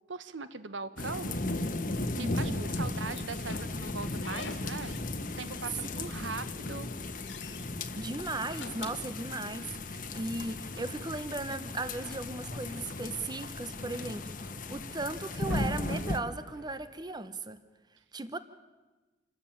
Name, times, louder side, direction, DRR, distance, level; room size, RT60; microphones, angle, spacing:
voice 1, 0.1-1.7 2.1-5.0 5.4-6.9, right 4 dB, 80° right, 13 dB, 1.1 m, -40 dB
sound 1, 1.0-16.2, left 2 dB, 45° left, 1.3 m, -36 dB
voice 2, 2.2-2.7 7.9-17.6 18.1-18.4, right 2 dB, 25° right, 12 dB, 0.9 m, -37 dB
Slam / Squeak, 3.1-5.1 5.4-6.4 6.8-7.7 8.3-9.9, left 4 dB, 75° left, 2.3 m, -47 dB
sound 2, 9.8-16.8, right 1 dB, 60° right, 3.7 m, -54 dB
27.5 x 13.0 x 8.7 m, 1.2 s
head